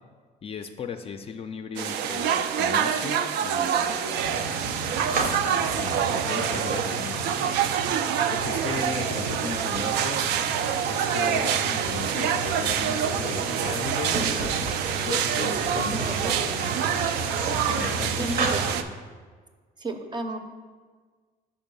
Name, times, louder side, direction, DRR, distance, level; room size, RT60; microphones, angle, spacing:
voice 1, 0.4-7.4 8.3-10.2 10.9-14.4 14.9-17.0 17.7-18.7, left 6 dB, 35° left, 7 dB, 0.4 m, -37 dB
sound 1, 1.8-18.8, right 8 dB, 80° right, 0.4 m, -26 dB
sound 2, 4.2-18.7, right 3 dB, 55° right, 0.8 m, -33 dB
voice 2, 15.4-16.8 18.0-18.9 19.8-20.4, right 2 dB, 25° right, 7 dB, 0.6 m, -34 dB
5.6 x 4.4 x 5.4 m, 1.5 s
cardioid pair, 110°, 17 cm